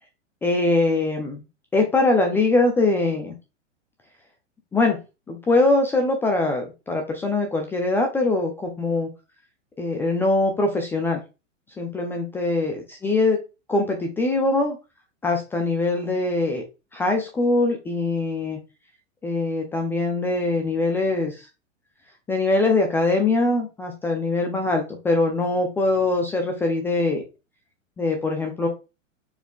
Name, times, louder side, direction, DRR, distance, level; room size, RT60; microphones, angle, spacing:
voice 1, 0.4-1.4 1.7-3.3 4.7-5.0 5.3-9.1 9.8-11.2 11.8-13.4 13.7-14.8 15.2-16.6 16.9-18.6 19.2-21.3 22.3-27.2 28.0-28.7, left 2 dB, 5° left, 2 dB, 0.3 m, -22 dB
4.5 x 4.2 x 2.2 m, 0.27 s
figure-of-eight pair, 105°, 38 cm